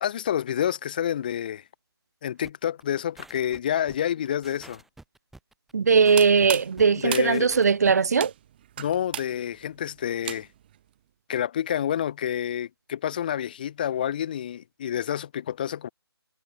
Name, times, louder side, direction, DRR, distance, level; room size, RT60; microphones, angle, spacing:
voice 1, 0.0-1.6 2.2-4.8 6.9-7.5 8.8-10.5 11.3-15.9, left 10 dB, 20° left, 0.5 m, -28 dB
sound 1, 2.4-8.1, right 2 dB, ahead, 8.0 m, -49 dB
voice 2, 5.7-8.3, right 5 dB, 40° right, 0.5 m, -20 dB
sound 2, 5.9-10.8, right 11 dB, 20° right, 1.1 m, -37 dB
figure-of-eight pair, 150°, 14 cm